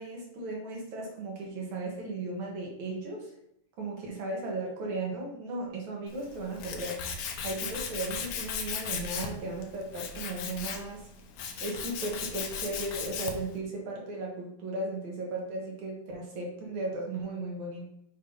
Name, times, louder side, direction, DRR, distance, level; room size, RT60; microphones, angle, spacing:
voice 1, 0.0-3.3 3.8-7.0 7.4-11.1 11.6-17.9, right 2 dB, 65° right, -1 dB, 2.6 m, -36 dB
Tools, 6.1-13.5, left 6 dB, 70° left, 1.8 m, -37 dB
7.1 x 3.1 x 5.5 m, 0.77 s
omnidirectional pair, 3.8 m